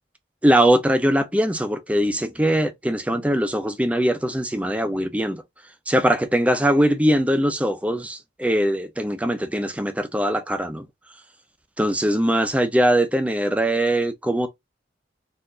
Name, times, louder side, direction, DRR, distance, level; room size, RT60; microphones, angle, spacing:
voice 1, 0.4-5.4 5.9-10.9 11.8-14.5, right 1 dB, 5° right, 0.5 m, -21 dB
4.5 x 2.5 x 3.8 m
head